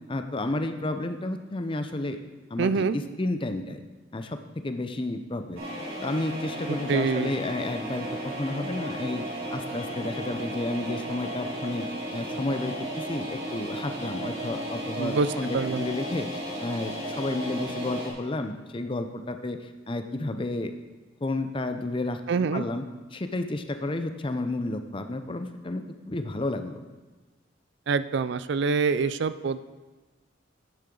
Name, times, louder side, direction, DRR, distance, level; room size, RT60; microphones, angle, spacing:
voice 1, 0.1-2.2 2.5-3.8 4.1-5.6 6.0-9.2 9.5-11.9 12.1-20.7 21.2-22.2 22.5-22.8 23.1-26.8, left 2 dB, 25° left, 8 dB, 0.6 m, -31 dB
voice 2, 2.6-3.0 6.7-7.4 15.0-15.3 15.5-15.9 22.3-22.6 27.9-29.6, right 5 dB, 60° right, 14 dB, 0.4 m, -25 dB
sound 1, 5.6-18.1, right 1 dB, 85° right, 3.2 m, -34 dB
10.5 x 9.6 x 3.9 m, 1.3 s
head